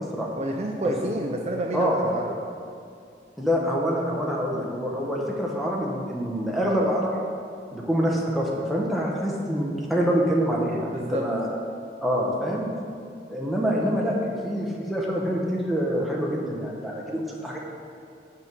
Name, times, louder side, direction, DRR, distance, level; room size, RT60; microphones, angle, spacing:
voice 1, 0.4-2.4 10.9-11.2, right 1 dB, 35° right, 1 dB, 0.4 m, -29 dB
voice 2, 3.4-7.2 7.7-11.5 12.0-12.6 13.3-17.6, equal, ahead, -4 dB, 0.9 m, -26 dB
6.2 x 5.6 x 5.2 m, 2.4 s
head